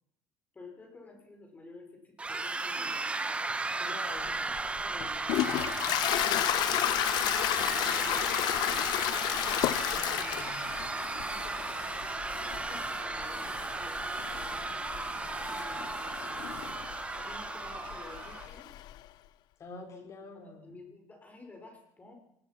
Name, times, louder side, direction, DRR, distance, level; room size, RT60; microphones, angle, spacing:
voice 1, 0.5-3.1 3.8-5.6 6.1-6.9 7.7-8.9 11.3-16.6 17.2-18.7 19.9-20.0 20.3-22.1, left 2 dB, 20° left, 3 dB, 5.5 m, -52 dB
sound 1, 2.2-18.5, right 3 dB, 15° right, 1.6 m, -35 dB
voice 2, 3.8-4.3 9.9-10.7 19.6-20.7, left 3 dB, 40° left, 3 dB, 6.1 m, -47 dB
Toilet flush, 4.3-19.0, left 14 dB, 60° left, 1.1 m, -33 dB
sound 2, 7.4-17.2, left 9 dB, 80° left, 3.9 m, -48 dB
28.0 x 20.0 x 6.0 m, 0.75 s
cardioid pair, 125°, 8 cm